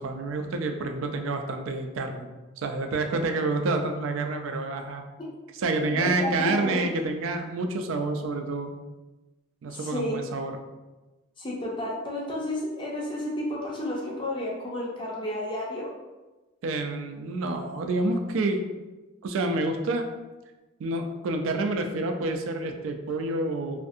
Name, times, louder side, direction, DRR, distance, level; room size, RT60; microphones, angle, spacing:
voice 1, 0.0-2.3 2.6-5.0 5.5-8.7 9.6-10.6 16.6-18.6 19.2-20.1 20.8-23.8, right 2 dB, 75° right, 4 dB, 0.3 m, -28 dB
voice 2, 5.9-6.8 9.7-10.2 11.4-15.9, left 1 dB, 25° left, -3 dB, 0.5 m, -31 dB
2.5 x 2.5 x 2.6 m, 1.2 s
head